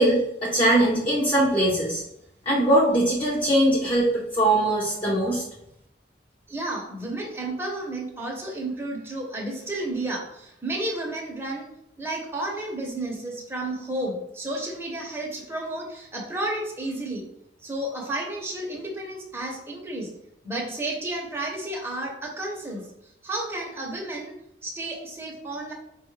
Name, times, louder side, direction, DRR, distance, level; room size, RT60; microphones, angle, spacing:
voice 1, 0.0-2.0 2.5-5.4, right 1 dB, 30° left, -6 dB, 0.8 m, -21 dB
voice 2, 6.5-11.7 12.0-17.3 17.6-20.1 20.4-24.3 24.6-25.7, right 1 dB, 15° right, -2 dB, 0.8 m, -32 dB
4.9 x 2.3 x 3.2 m, 0.80 s
head